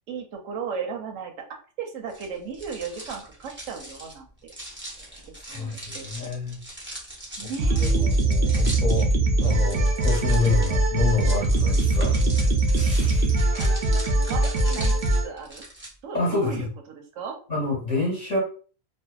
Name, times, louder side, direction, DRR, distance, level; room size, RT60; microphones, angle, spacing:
voice 1, 0.1-1.3 1.8-4.3 5.5-6.3 7.4-7.9 14.3-14.9 15.2-15.6 16.0-17.4, right 6 dB, 85° right, 4 dB, 1.0 m, -35 dB
sound 1, 2.1-15.9, right 1 dB, 20° right, 0.3 m, -40 dB
voice 2, 5.0-6.6 7.4-9.1 9.4-13.8 16.1-16.7 17.5-18.4, left 3 dB, 40° left, -4 dB, 0.7 m, -28 dB
sound 2, 7.6-15.3, right 2 dB, 60° right, 0.6 m, -21 dB
2.5 x 2.1 x 2.3 m, 0.40 s
omnidirectional pair, 1.4 m